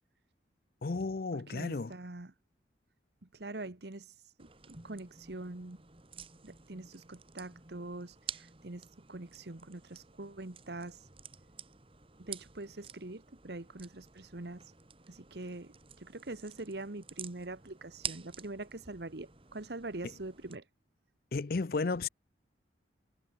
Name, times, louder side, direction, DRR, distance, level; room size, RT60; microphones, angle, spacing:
voice 1, 0.8-1.9 21.3-22.1, left 3 dB, 50° left, 0.5 m, -33 dB
voice 2, 1.3-2.3 3.2-5.8 6.4-11.1 12.2-14.7 15.1-20.7, right 2 dB, 65° right, 1.3 m, -44 dB
sound 1, 4.4-20.6, right 7 dB, 30° right, 1.8 m, -49 dB
head